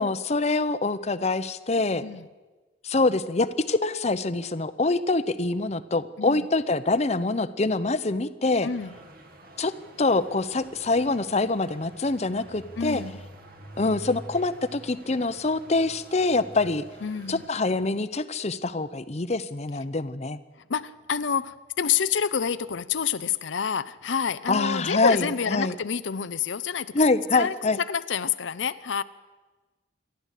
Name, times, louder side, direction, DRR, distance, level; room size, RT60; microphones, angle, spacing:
voice 1, 0.0-2.0 2.8-8.7 9.6-9.7 10.0-13.0 13.8-16.8 17.3-20.4 24.5-25.7 26.9-27.8, left 3 dB, 35° left, 13 dB, 0.7 m, -25 dB
voice 2, 8.6-8.9 12.8-13.2 17.0-17.4 20.7-26.9 27.3-29.0, left 7 dB, 80° left, 13 dB, 0.6 m, -28 dB
sound 1, 8.7-17.5, right 1 dB, 50° right, 1.9 m, -46 dB
27.5 x 11.5 x 8.3 m, 1.3 s
head